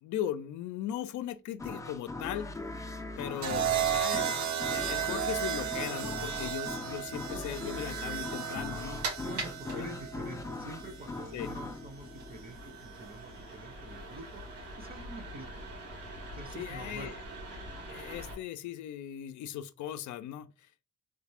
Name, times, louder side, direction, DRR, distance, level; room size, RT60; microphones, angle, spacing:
voice 1, 0.0-2.5 3.2-4.4 4.7-9.0 9.7-9.9 11.3-11.5 16.5-17.2 17.9-20.7, left 11 dB, 70° left, 0.4 m, -38 dB
sound 1, 1.6-13.1, left 2 dB, 10° left, 0.4 m, -40 dB
sound 2, 3.4-11.5 12.8-13.1, right 9 dB, 65° right, 0.7 m, -34 dB
sound 3, 8.6-18.3, right 2 dB, 90° right, 1.6 m, -44 dB
voice 2, 9.2-15.8 16.3-17.1, right 2 dB, 30° right, 0.7 m, -47 dB
3.3 x 2.4 x 3.4 m
cardioid pair, 90°, 30 cm